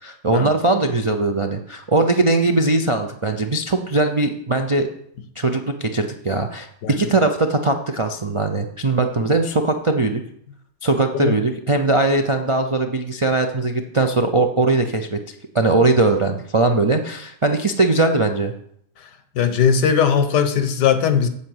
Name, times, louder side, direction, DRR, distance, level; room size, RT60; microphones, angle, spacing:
voice 1, 0.0-4.9 5.4-10.2 10.8-18.5, right 2 dB, 55° right, 4 dB, 0.3 m, -20 dB
voice 2, 19.4-21.3, left 7 dB, 90° left, 9 dB, 1.6 m, -18 dB
8.5 x 6.7 x 7.9 m, 0.70 s
omnidirectional pair, 1.7 m